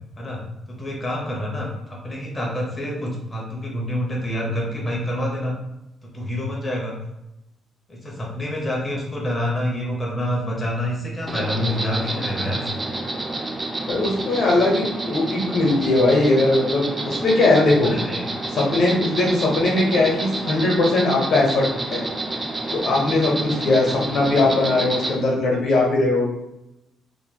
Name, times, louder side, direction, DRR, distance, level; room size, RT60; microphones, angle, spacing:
voice 1, 0.2-5.5 6.0-7.0 7.9-12.7 17.8-18.2, left 1 dB, 20° left, -3 dB, 0.7 m, -27 dB
Insect, 11.3-25.1, right 2 dB, 25° right, 0.3 m, -29 dB
voice 2, 13.9-17.9 18.5-22.0 22.7-26.3, left 2 dB, 65° left, -2 dB, 0.9 m, -20 dB
3.0 x 2.8 x 2.2 m, 0.89 s
cardioid pair, 90°, 0 cm